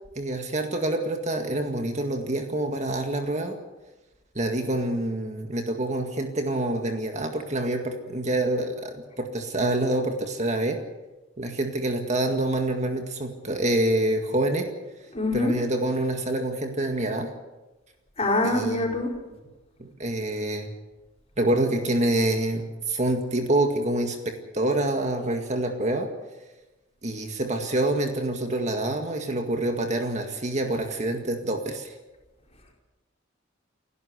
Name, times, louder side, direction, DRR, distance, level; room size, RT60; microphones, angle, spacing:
voice 1, 0.2-3.6 4.4-10.8 11.4-14.7 15.3-17.3 18.4-18.9 19.3-19.4 19.8-20.7 21.4-26.1 27.0-31.9, right 1 dB, 35° right, 4 dB, 2.0 m, -26 dB
voice 2, 15.1-15.5 18.2-19.1, left 2 dB, 30° left, 0 dB, 4.7 m, -24 dB
30.0 x 11.5 x 8.2 m, 1.1 s
head